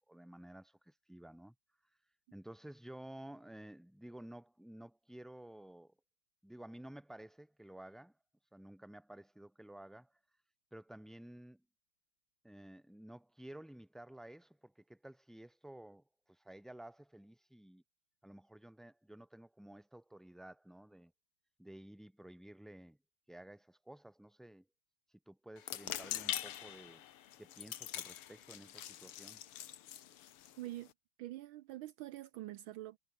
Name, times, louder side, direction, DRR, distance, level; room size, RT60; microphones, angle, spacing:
voice 1, 0.1-1.5 2.3-5.9 6.4-8.2 8.5-10.2 10.7-11.6 12.4-17.8 18.2-21.1 21.6-23.0 23.3-24.7 25.3-27.0 27.4-29.4, right 1 dB, ahead, 2.5 m, -53 dB
sound 1, 25.6-30.9, left 11 dB, 85° left, 2.1 m, -44 dB
voice 2, 30.6-30.9 31.2-33.0, right 15 dB, 75° right, 1.4 m, -45 dB
omnidirectional pair, 2.4 m